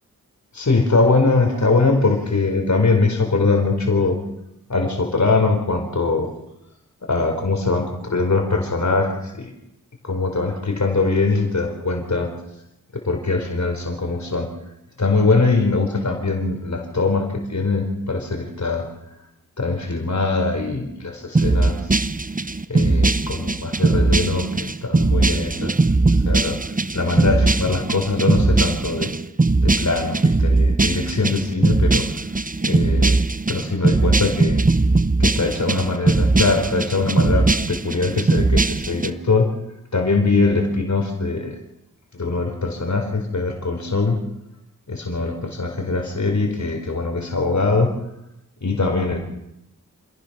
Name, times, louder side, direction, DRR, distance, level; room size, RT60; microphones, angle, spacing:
voice 1, 0.5-4.2 4.7-6.3 7.0-9.5 10.0-12.3 12.9-14.5 15.0-18.9 19.6-21.9 22.7-25.8 26.1-26.6 26.9-29.1 29.6-32.1 32.6-33.2 33.5-34.6 35.2-39.5 39.9-41.6 42.1-44.2 44.9-47.9 48.6-49.2, left 3 dB, 55° left, 3 dB, 4.7 m, -22 dB
sound 1, 21.3-39.1, right 3 dB, 25° right, 0.9 m, -19 dB
27.5 x 15.5 x 6.2 m, 0.85 s
cardioid pair, 40°, 34 cm